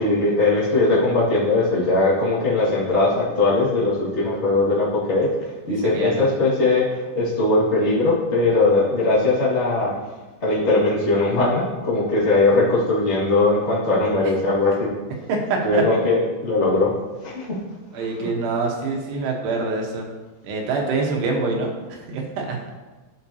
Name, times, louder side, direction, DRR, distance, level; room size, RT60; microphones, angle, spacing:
voice 1, 0.0-9.9 10.4-14.9 15.6-16.9 17.2-17.6 18.2-18.3, left 2 dB, 65° left, -9 dB, 0.6 m, -20 dB
voice 2, 5.7-6.3 15.3-15.8 17.9-20.1 20.4-22.6, right 3 dB, 75° right, 1 dB, 3.3 m, -25 dB
14.0 x 5.9 x 2.8 m, 1.2 s
omnidirectional pair, 5.0 m